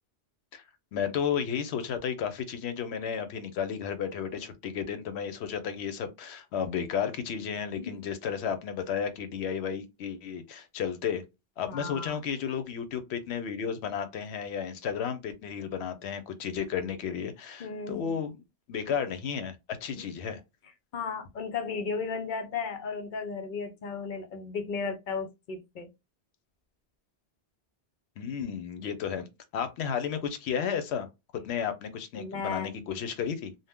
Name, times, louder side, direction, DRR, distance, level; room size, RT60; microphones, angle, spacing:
voice 1, 0.9-11.2 11.6-18.4 18.7-20.4 28.2-29.3 29.5-31.1 31.3-33.5, left 7 dB, 85° left, 0.9 m, -33 dB
voice 2, 11.7-12.2 17.6-18.2 19.9-20.1 20.9-25.9 32.2-32.7, left 5 dB, 55° left, 0.6 m, -35 dB
2.7 x 2.1 x 3.4 m
omnidirectional pair, 1.1 m